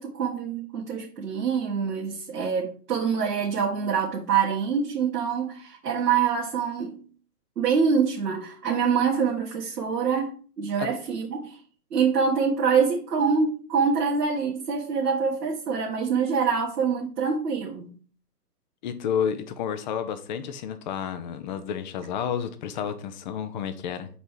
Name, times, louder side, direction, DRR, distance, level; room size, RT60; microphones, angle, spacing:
voice 1, 0.0-7.0 7.6-11.6 11.9-17.9, right 6 dB, 85° right, 1.6 m, -25 dB
voice 2, 18.8-24.1, left 8 dB, 30° left, 0.6 m, -30 dB
5.3 x 4.1 x 4.6 m
hypercardioid pair, 140°, 47 cm